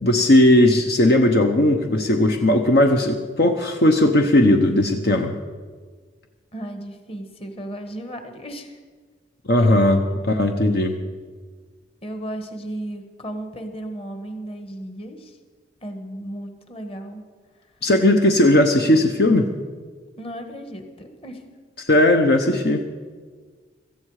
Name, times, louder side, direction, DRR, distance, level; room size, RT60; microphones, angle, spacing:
voice 1, 0.0-5.3 9.5-10.9 17.8-19.5 21.9-22.8, left 1 dB, 60° left, 5 dB, 0.9 m, -17 dB
voice 2, 6.5-8.8 9.5-10.1 12.0-15.4 15.8-17.2 20.2-21.4, right 1 dB, 30° left, 6 dB, 1.4 m, -35 dB
17.5 x 13.5 x 4.9 m, 1.5 s
head